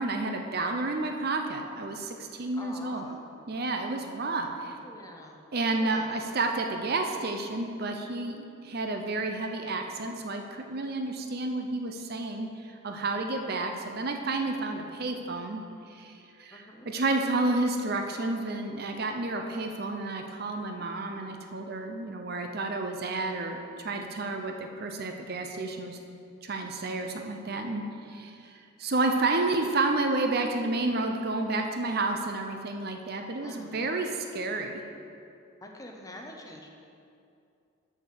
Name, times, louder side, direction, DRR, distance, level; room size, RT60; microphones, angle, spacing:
voice 1, 0.0-3.0 3.5-4.8 5.5-15.6 15.9-23.6 23.8-26.0 26.4-27.8 28.1-34.8, right 2 dB, 50° right, 4 dB, 0.6 m, -30 dB
voice 2, 2.5-3.2 4.6-5.4 5.7-6.2 16.5-16.9 33.4-34.0 35.6-36.7, left 1 dB, 15° left, 1 dB, 0.7 m, -46 dB
6.9 x 6.4 x 6.5 m, 2.5 s
head